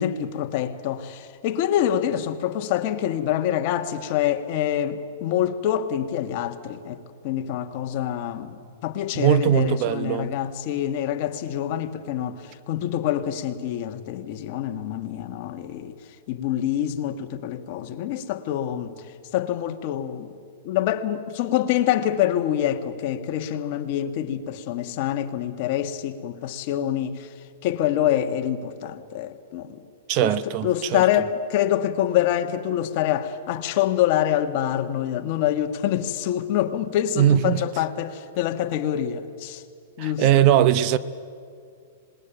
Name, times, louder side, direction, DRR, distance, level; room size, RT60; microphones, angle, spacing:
voice 1, 0.0-12.4 12.7-15.9 16.3-18.9 19.3-20.3 20.6-27.3 27.6-29.8 30.2-39.6 40.0-40.5, left 11 dB, 45° left, 1.6 m, -26 dB
voice 2, 9.2-10.3 30.1-31.0 37.2-37.6 40.0-41.0, right 11 dB, 40° right, 0.8 m, -20 dB
26.0 x 20.5 x 9.1 m
hypercardioid pair, 150°, 0 cm